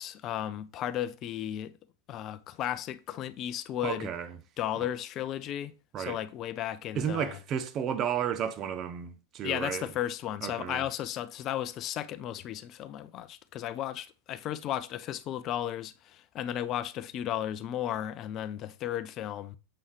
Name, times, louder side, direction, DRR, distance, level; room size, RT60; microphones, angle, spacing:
voice 1, 0.0-1.7 2.1-4.1 4.6-7.4 9.4-19.6, left 11 dB, 35° left, 0.5 m, -34 dB
voice 2, 3.8-4.3 5.9-6.2 6.9-9.9 10.4-10.8, right 8 dB, 30° right, 0.8 m, -32 dB
7.6 x 5.5 x 3.2 m
figure-of-eight pair, 90°, 0 cm